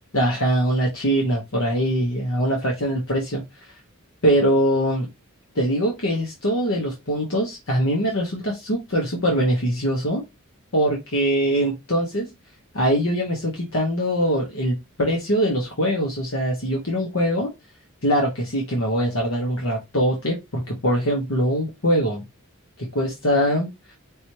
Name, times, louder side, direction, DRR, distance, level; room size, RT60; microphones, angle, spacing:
voice 1, 0.1-3.4 4.2-5.1 5.5-10.2 10.7-12.3 12.7-17.5 18.0-22.2 22.8-23.7, equal, 80° left, 1.4 m, -22 dB
5.3 x 2.9 x 3.2 m
head